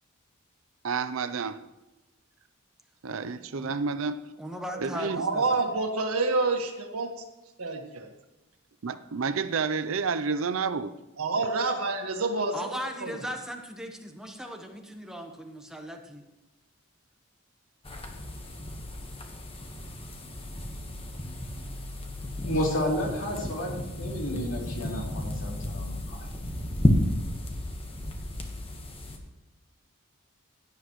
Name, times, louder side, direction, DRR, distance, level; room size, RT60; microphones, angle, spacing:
voice 1, 0.8-1.6 3.0-4.3 4.7-5.3 5.7-5.8 8.8-11.0, right 5 dB, 65° right, 0.5 m, -30 dB
voice 2, 4.4-5.7 12.5-16.2, equal, 5° right, 1.1 m, -38 dB
voice 3, 5.2-7.1 7.6-8.1 11.2-12.7 13.0-13.2, right 3 dB, 85° right, 1.6 m, -28 dB
sound 1, 17.9-29.2, left 1 dB, 25° left, 1.3 m, -32 dB
voice 4, 22.4-26.3, left 1 dB, 60° left, 3.3 m, -31 dB
16.0 x 9.8 x 3.1 m
head